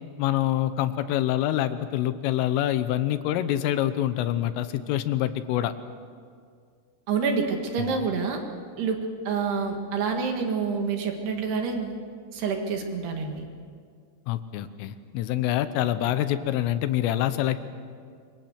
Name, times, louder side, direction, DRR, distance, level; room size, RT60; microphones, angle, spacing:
voice 1, 0.2-5.7 7.8-8.1 14.3-17.6, left 12 dB, 80° left, 11 dB, 3.4 m, -26 dB
voice 2, 7.1-8.4 8.8-9.0 9.3-11.9 12.3-13.5, right 5 dB, 60° right, 3 dB, 3.4 m, -27 dB
26.0 x 22.5 x 8.1 m, 2.1 s
omnidirectional pair, 5.9 m